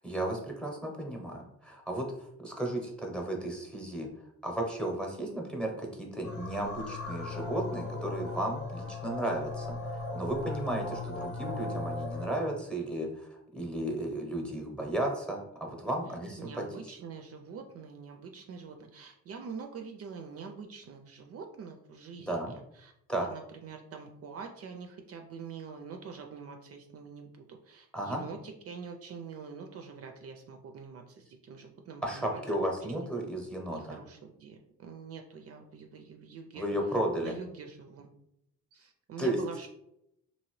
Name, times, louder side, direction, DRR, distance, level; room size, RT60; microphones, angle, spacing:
voice 1, 0.0-4.1 4.4-9.8 10.1-16.9 22.2-22.5 23.1-23.3 27.9-28.2 32.0-34.0 36.5-37.3 39.2-39.4, right 1 dB, 5° left, 0 dB, 0.8 m, -34 dB
sound 1, 6.2-12.4, left 3 dB, 50° left, 0.9 m, -37 dB
voice 2, 16.4-22.9 23.2-32.4 32.9-33.1 33.7-36.7 37.2-38.1 38.7-39.7, right 5 dB, 50° right, 4 dB, 0.4 m, -45 dB
2.8 x 2.7 x 3.1 m, 0.80 s
cardioid pair, 90°, 30 cm